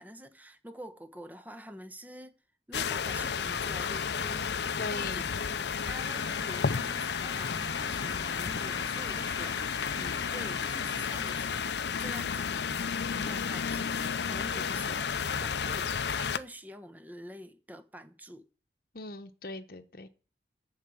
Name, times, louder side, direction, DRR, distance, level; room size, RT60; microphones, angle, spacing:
voice 1, 0.0-2.3 2.7-5.6 5.8-12.6 13.1-18.5, equal, 10° right, 1.0 m, -47 dB
sound 1, 2.7-16.4, left 6 dB, 75° left, 0.6 m, -32 dB
voice 2, 4.8-5.2 18.9-20.1, left 3 dB, 55° left, 1.0 m, -39 dB
sound 2, 6.0-11.4, left 5 dB, 20° left, 0.6 m, -44 dB
14.0 x 4.9 x 8.5 m
head